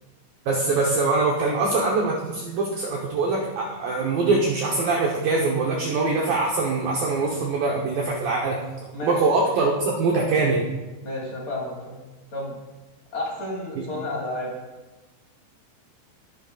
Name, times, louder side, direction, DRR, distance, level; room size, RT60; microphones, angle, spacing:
voice 1, 0.5-8.6 9.0-10.6 13.8-13.9, right 3 dB, 75° right, -2 dB, 2.1 m, -23 dB
voice 2, 11.0-12.0 12.3-12.5 13.1-14.6, left 2 dB, 20° left, -4 dB, 1.8 m, -31 dB
18.5 x 6.6 x 2.4 m, 1.1 s
omnidirectional pair, 5.3 m